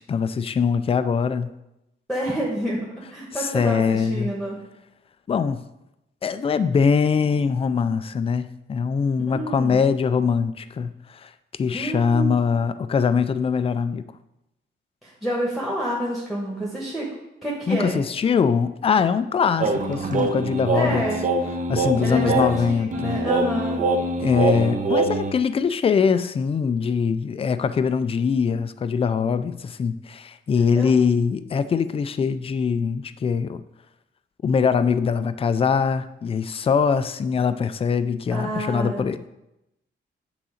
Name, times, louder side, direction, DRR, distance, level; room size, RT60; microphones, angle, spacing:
voice 1, 0.0-1.5 3.4-4.3 5.3-5.6 6.2-11.3 11.6-14.1 17.7-21.0 21.7-23.2 24.2-33.6 34.4-39.2, left 6 dB, 30° left, 12 dB, 0.3 m, -22 dB
voice 2, 2.1-4.6 9.3-9.8 11.7-12.4 15.0-17.1 17.4-18.0 19.5-19.6 19.9-20.2 20.7-21.2 22.0-23.8 30.7-30.9 38.3-39.0, right 1 dB, ahead, -3 dB, 1.2 m, -28 dB
sound 1, 19.6-25.3, right 2 dB, 40° right, 0.8 m, -24 dB
8.8 x 3.9 x 6.4 m, 0.89 s
wide cardioid pair, 170°, 20 cm